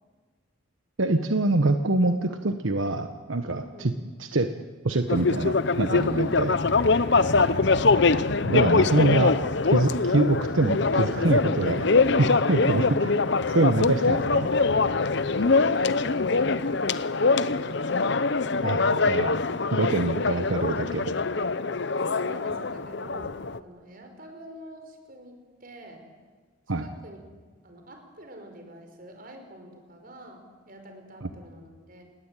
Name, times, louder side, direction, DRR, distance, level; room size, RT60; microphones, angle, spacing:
voice 1, 1.0-3.9 4.2-4.5 4.8-6.5 8.4-9.4 9.6-11.8 12.5-13.1 13.5-14.5 18.6-18.8 19.1-19.4 19.7-21.2 26.7-26.9 31.2-31.3, right 2 dB, 85° right, 8 dB, 1.2 m, -25 dB
voice 2, 3.5-4.0 6.0-6.6 7.0-7.5 10.9-12.4 15.1-18.2 18.6-19.1 19.4-20.1 21.3-26.1 26.8-27.2 27.6-32.0, right 1 dB, 45° right, 5 dB, 5.2 m, -45 dB
sound 1, 5.1-23.6, left 4 dB, 60° left, 0.8 m, -23 dB
28.0 x 20.5 x 9.1 m, 1.4 s
head